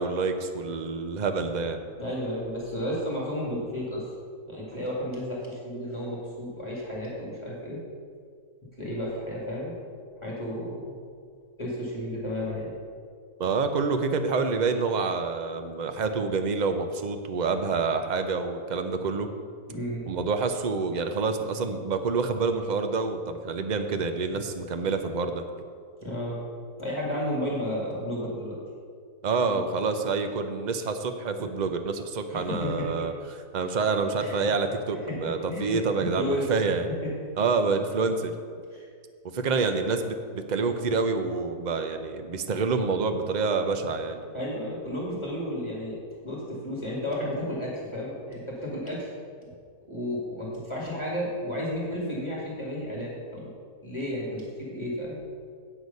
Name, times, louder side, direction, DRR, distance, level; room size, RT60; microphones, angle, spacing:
voice 1, 0.0-1.8 13.4-19.3 20.1-25.4 29.2-33.1 33.5-36.9 37.4-38.3 39.3-44.2, right 4 dB, 60° right, 7 dB, 0.4 m, -27 dB
voice 2, 2.0-4.1 4.4-7.8 8.8-9.7 10.2-10.9 11.6-12.7 19.7-20.0 26.0-26.4 26.8-28.6 29.5-29.6 32.3-33.1 34.2-34.5 35.0-36.4 36.9-37.1 38.7-38.9 44.3-46.0 46.2-49.1 49.9-53.5 53.8-55.2, left 1 dB, 20° left, -6 dB, 2.1 m, -32 dB
8.7 x 8.0 x 5.3 m, 2.1 s
omnidirectional pair, 1.7 m